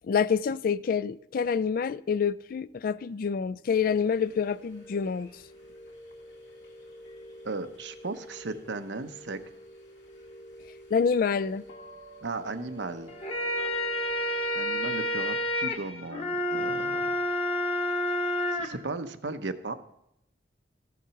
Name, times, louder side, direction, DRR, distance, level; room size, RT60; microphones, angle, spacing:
voice 1, 0.1-5.3 10.9-11.6, left 6 dB, 50° left, 0.3 m, -27 dB
sound 1, 3.7-14.6, equal, 75° left, 2.2 m, -48 dB
voice 2, 7.4-9.4 12.2-13.1 14.5-17.1 18.5-19.7, right 3 dB, 80° right, 0.9 m, -36 dB
sound 2, 13.1-18.7, left 1 dB, 35° left, 1.1 m, -29 dB
15.0 x 7.2 x 5.8 m
head